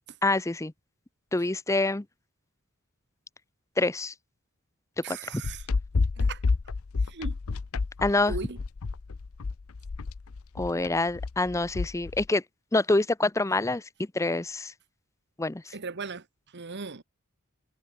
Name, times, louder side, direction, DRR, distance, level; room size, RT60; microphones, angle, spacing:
voice 1, 0.2-0.7 1.3-2.0 3.8-4.1 5.1-5.4 8.0-8.3 10.6-12.4 12.7-13.8 14.1-14.7 15.4-15.8, left 2 dB, 15° left, 0.6 m, -26 dB
voice 2, 5.0-5.7 6.2-6.4 7.1-7.4 8.3-8.6 15.7-16.2 16.5-17.0, right 4 dB, 50° right, 1.2 m, -37 dB
sound 1, 5.4-12.2, left 4 dB, 70° left, 0.6 m, -29 dB
head